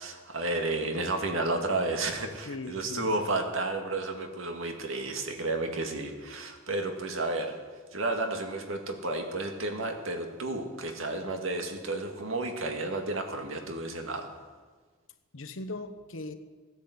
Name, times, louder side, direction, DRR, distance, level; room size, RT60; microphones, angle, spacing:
voice 1, 0.0-7.5 7.9-14.3, right 2 dB, 80° right, 4 dB, 2.0 m, -32 dB
voice 2, 2.4-3.3 15.3-16.3, left 2 dB, 75° left, 9 dB, 1.1 m, -39 dB
16.5 x 10.5 x 8.0 m, 1.5 s
head